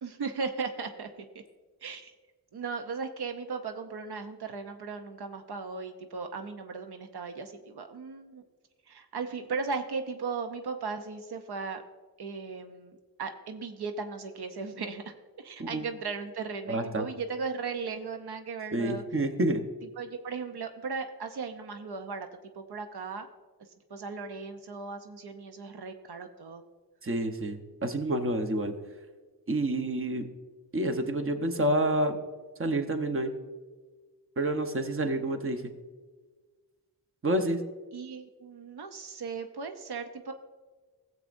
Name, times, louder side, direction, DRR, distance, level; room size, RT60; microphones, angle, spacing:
voice 1, 0.0-1.4 1.8-2.1 2.5-8.4 8.9-11.8 12.2-19.0 20.0-22.3 22.5-23.3 23.9-26.6 37.9-40.3, right 4 dB, 80° right, 7 dB, 0.7 m, -37 dB
voice 2, 16.7-17.0 18.7-19.6 27.0-28.7 29.5-30.2 30.7-32.1 32.6-33.3 34.4-35.7 37.2-37.6, right 1 dB, 35° right, 6 dB, 0.9 m, -28 dB
17.0 x 7.6 x 2.6 m, 1.4 s
wide cardioid pair, 90°, 38 cm